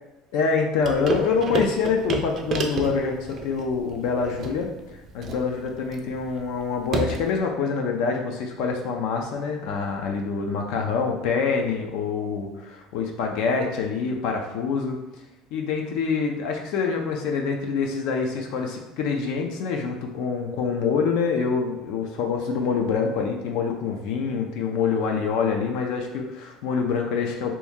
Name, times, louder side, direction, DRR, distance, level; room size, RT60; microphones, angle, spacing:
voice 1, 0.3-4.7 5.1-15.0 15.5-27.5, left 5 dB, 65° left, 2 dB, 0.6 m, -26 dB
sound 1, 0.8-7.4, right 3 dB, 30° right, 0.4 m, -31 dB
3.0 x 2.6 x 3.5 m, 1.0 s
cardioid pair, 160°, 0 cm